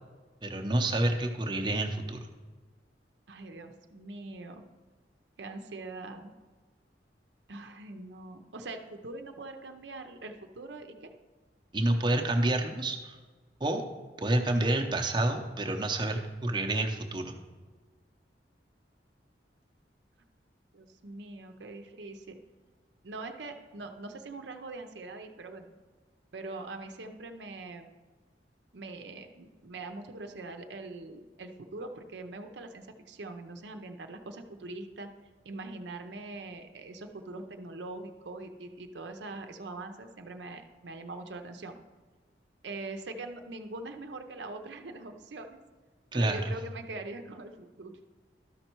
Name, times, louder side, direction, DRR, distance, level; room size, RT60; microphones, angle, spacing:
voice 1, 0.4-2.3 11.7-13.2 13.6-13.8 14.2-17.4 46.1-46.4, right 1 dB, 25° right, 3 dB, 0.7 m, -28 dB
voice 2, 3.3-4.6 5.4-6.3 7.5-11.1 20.7-22.4 23.0-25.7 26.3-27.9 28.7-35.1 35.4-41.8 42.6-45.6 46.1-48.0, right 2 dB, 80° right, 6 dB, 0.7 m, -42 dB
12.5 x 5.4 x 4.5 m, 1.4 s
head